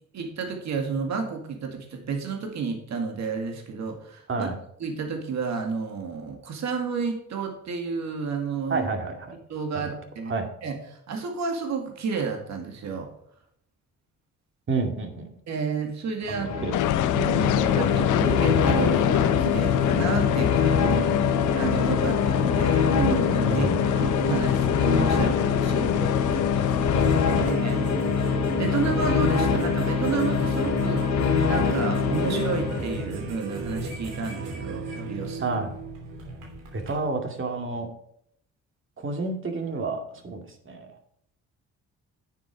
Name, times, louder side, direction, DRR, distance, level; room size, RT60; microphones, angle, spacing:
voice 1, 0.1-4.5 4.8-8.9 9.5-10.3 10.6-10.8 11.1-13.1 15.5-16.7 17.1-17.5 17.8-20.9 21.5-23.7 24.0-26.8 27.5-27.9 28.2-35.6, right 5 dB, 65° right, 3 dB, 2.2 m, -31 dB
voice 2, 8.7-9.4 9.7-9.9 10.3-10.5 14.7-15.3 16.3-16.8 17.4-17.6 20.8-21.3 23.5-23.8 26.9-27.8 35.4-35.7 36.7-37.9 39.0-40.4 40.7-40.9, right 3 dB, 40° right, 4 dB, 2.3 m, -30 dB
sound 1, 16.2-33.1, left 6 dB, 65° left, 1.7 m, -24 dB
sound 2, 16.7-27.5, left 12 dB, 80° left, 0.7 m, -26 dB
sound 3, 27.0-37.0, right 3 dB, 90° right, 2.9 m, -34 dB
9.4 x 7.6 x 4.8 m, 0.70 s
cardioid pair, 90°, 30 cm